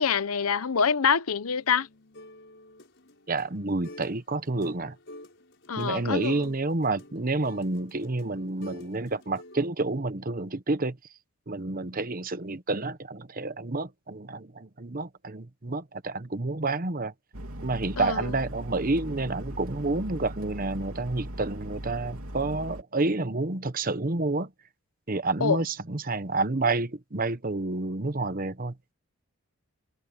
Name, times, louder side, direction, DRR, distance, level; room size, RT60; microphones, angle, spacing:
voice 1, 0.0-1.9 5.7-6.5 18.0-18.3 25.4-25.6, left 6 dB, 90° left, 0.8 m, -25 dB
sound 1, 1.3-4.2 4.5-9.7, left 1 dB, 55° left, 6.0 m, -50 dB
voice 2, 3.3-5.0 5.8-11.0 11.5-17.1 17.6-24.5 25.1-28.7, right 2 dB, 40° right, 1.0 m, -29 dB
sound 2, 17.3-22.8, right 1 dB, 85° right, 3.1 m, -39 dB
head